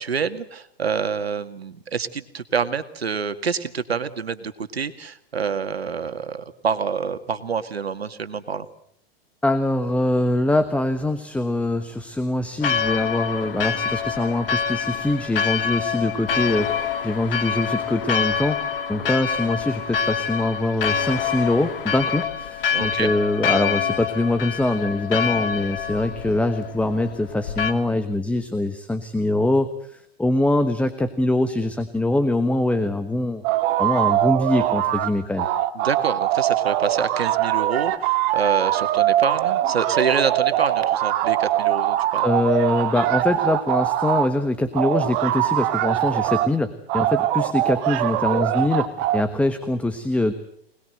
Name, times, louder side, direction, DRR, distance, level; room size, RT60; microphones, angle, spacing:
voice 1, 0.0-8.7 22.7-23.1 35.7-42.2, right 6 dB, 80° right, 10 dB, 2.1 m, -27 dB
voice 2, 9.4-16.7 17.0-33.4 33.8-35.5 42.2-50.3, left 2 dB, 5° left, 10 dB, 1.3 m, -23 dB
Church bell, 12.6-27.7, left 7 dB, 65° left, 2.7 m, -26 dB
sound 1, 33.4-35.1 35.4-44.3 44.7-46.5 46.9-49.2, right 13 dB, 35° right, 1.7 m, -22 dB
25.5 x 20.0 x 7.9 m, 0.69 s
hypercardioid pair, 115°, 30 cm